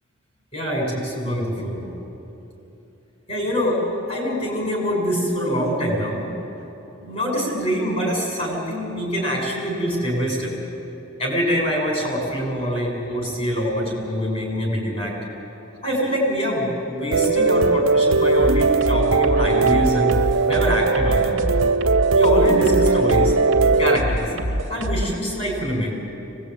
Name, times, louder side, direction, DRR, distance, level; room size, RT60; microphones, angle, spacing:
voice 1, 0.5-1.9 3.3-3.8 4.1-6.3 7.0-10.5 11.2-15.1 15.8-20.2 20.5-21.4 22.1-23.3 23.8-24.3 24.7-25.9, equal, 30° left, -1 dB, 6.9 m, -24 dB
sound 1, 17.1-24.0, right 4 dB, 80° right, 0.8 m, -19 dB
sound 2, 18.4-25.2, equal, 60° right, 2.5 m, -26 dB
25.0 x 20.0 x 9.3 m, 2.9 s
head